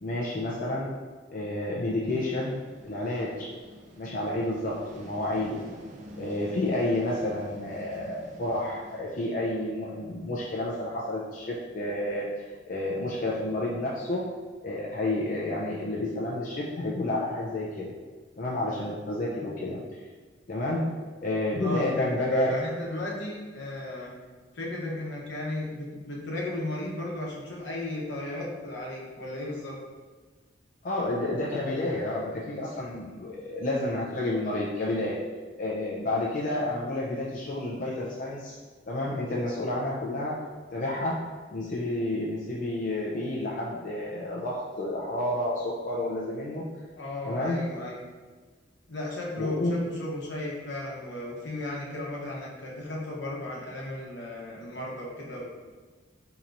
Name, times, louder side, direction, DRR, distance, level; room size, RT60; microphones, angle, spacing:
voice 1, 0.0-0.9 1.3-2.6 2.8-3.5 4.0-5.6 6.2-12.3 12.7-14.3 14.6-17.9 18.4-19.8 20.5-21.0 21.2-22.6 30.8-35.2 35.6-38.5 38.9-40.4 40.7-41.2 41.5-46.7 47.2-47.7 49.4-49.9, left 1 dB, 45° left, -5 dB, 0.5 m, -30 dB
sound 1, 2.0-10.8, equal, 40° right, 0.5 m, -48 dB
voice 2, 21.6-24.1 24.5-29.8 46.9-48.0 48.9-55.5, left 1 dB, 75° left, -4 dB, 0.9 m, -35 dB
4.4 x 2.9 x 2.6 m, 1.4 s
head